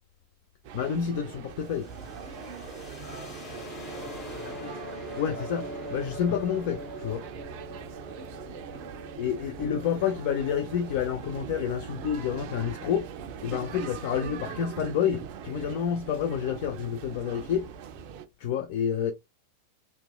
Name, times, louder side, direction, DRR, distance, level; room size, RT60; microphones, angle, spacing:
sound 1, 0.6-18.3, right 7 dB, 45° right, 0.4 m, -41 dB
voice 1, 0.7-1.9 5.2-5.6 5.9-7.2 9.2-13.1 13.4-17.7 18.4-19.1, left 8 dB, 50° left, 0.3 m, -29 dB
sound 2, 1.6-13.3, left 1 dB, 30° left, 0.8 m, -43 dB
voice 2, 2.9-6.0 8.6-9.2 9.6-10.1, right 2 dB, 80° left, 1.3 m, -50 dB
2.8 x 2.2 x 2.3 m
figure-of-eight pair, 90°, 0 cm